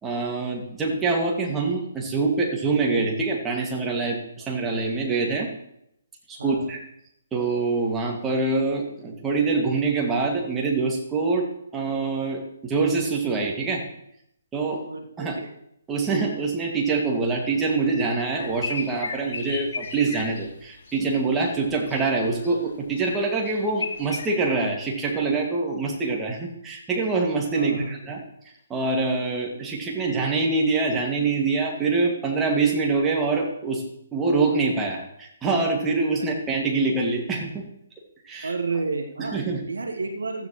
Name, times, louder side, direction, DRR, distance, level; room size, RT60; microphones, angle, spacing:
voice 1, 0.0-5.5 6.3-6.8 7.3-13.8 14.5-14.8 15.2-15.3 15.9-28.2 28.7-33.8 34.1-37.5 38.2-38.5 39.2-39.6, right 3 dB, 10° right, -1 dB, 2.2 m, -25 dB
voice 2, 6.4-6.7 14.9-15.5 27.5-28.0 36.2-36.3 38.4-39.4 39.7-40.5, right 4 dB, 65° right, 5 dB, 1.3 m, -30 dB
sound 1, 18.3-21.0 21.4-22.6 22.9-24.2, left 4 dB, 45° left, 2.9 m, -35 dB
15.5 x 13.0 x 3.2 m, 0.75 s
figure-of-eight pair, 135°, 0 cm